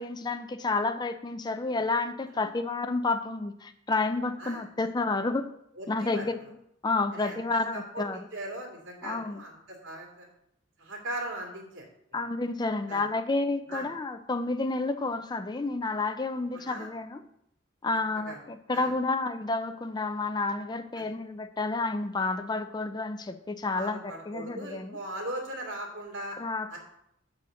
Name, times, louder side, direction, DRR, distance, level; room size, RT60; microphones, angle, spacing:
voice 1, 0.0-5.5 5.9-6.4 6.8-8.3 9.0-9.4 12.1-17.2 17.8-25.0 26.4-26.8, left 3 dB, 20° left, 10 dB, 0.4 m, -30 dB
voice 2, 5.8-6.2 7.1-8.1 8.3-10.3 10.8-11.9 12.1-12.2 12.9-13.0 13.7-13.9 16.5-16.9 18.3-18.4 18.7-18.9 20.9-21.0 23.7-26.4 26.7-26.8, right 1 dB, 85° right, 0 dB, 2.3 m, -39 dB
7.6 x 4.2 x 6.3 m, 0.75 s
head